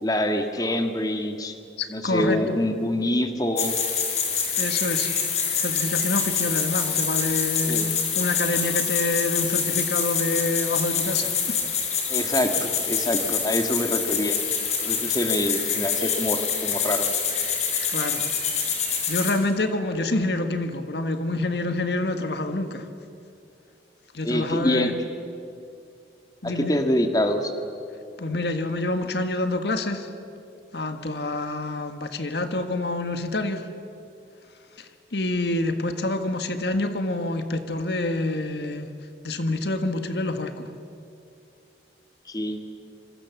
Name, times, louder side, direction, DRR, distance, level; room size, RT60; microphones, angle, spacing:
voice 1, 0.0-1.5 1.9-3.7 7.6-7.9 12.1-14.4 14.8-17.1 24.2-24.9 26.4-27.5 42.3-42.7, left 1 dB, 20° left, 6 dB, 1.9 m, -25 dB
voice 2, 1.8-2.6 4.6-5.1 5.6-11.6 17.9-18.3 19.1-22.9 24.1-24.9 26.4-26.8 28.2-30.1 30.7-33.7 34.8-38.9 39.2-40.7, left 2 dB, 70° left, 8 dB, 1.6 m, -27 dB
sound 1, 3.6-19.3, left 6 dB, 40° left, 4.4 m, -26 dB
27.0 x 26.0 x 7.3 m, 2.5 s
head